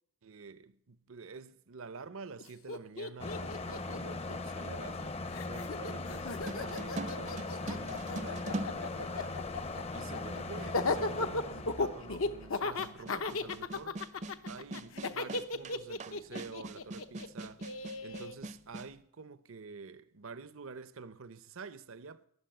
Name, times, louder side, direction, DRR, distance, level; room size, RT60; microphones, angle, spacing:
voice 1, 0.2-5.1 5.4-9.4 9.9-14.0 14.5-17.7 18.0-22.3, right 4 dB, 75° right, 0.8 m, -48 dB
Laughter, 2.4-2.5 2.7-5.0 5.3-18.3, left 3 dB, 75° left, 0.9 m, -36 dB
sound 1, 3.2-13.4, left 3 dB, 30° left, 0.6 m, -40 dB
sound 2, 6.5-9.6 10.5-10.6 12.8-18.9, right 2 dB, 35° right, 0.5 m, -42 dB
13.5 x 11.0 x 9.2 m
head